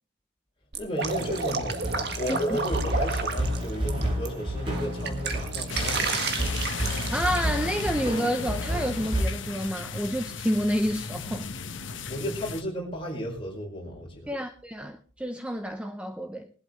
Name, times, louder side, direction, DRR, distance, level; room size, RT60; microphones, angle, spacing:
Drip, 0.7-4.3 4.7-7.8, right 4 dB, 55° right, 1.8 m, -32 dB
voice 1, 0.8-6.5 12.1-14.3, equal, 25° left, 5.0 m, -33 dB
sound 1, 1.0-9.2, equal, 25° right, 6.8 m, -31 dB
voice 2, 2.3-2.6 7.1-11.5 14.3-16.5, equal, 5° right, 0.7 m, -29 dB
sound 2, 5.7-12.6, left 5 dB, 75° left, 1.3 m, -35 dB
20.5 x 12.0 x 3.2 m
head